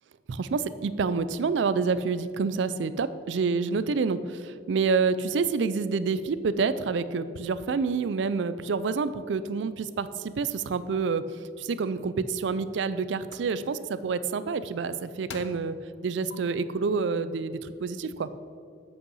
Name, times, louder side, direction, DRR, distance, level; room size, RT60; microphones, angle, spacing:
voice 1, 0.3-11.3 11.6-15.8 16.0-18.3, right 5 dB, 75° right, 14 dB, 0.4 m, -28 dB
sound 1, 11.9-12.0 12.6-12.9 13.3-13.5 14.7-14.8 15.3-15.7 16.3-16.4, left 4 dB, 70° left, 0.6 m, -43 dB
8.2 x 5.5 x 5.5 m, 2.3 s
head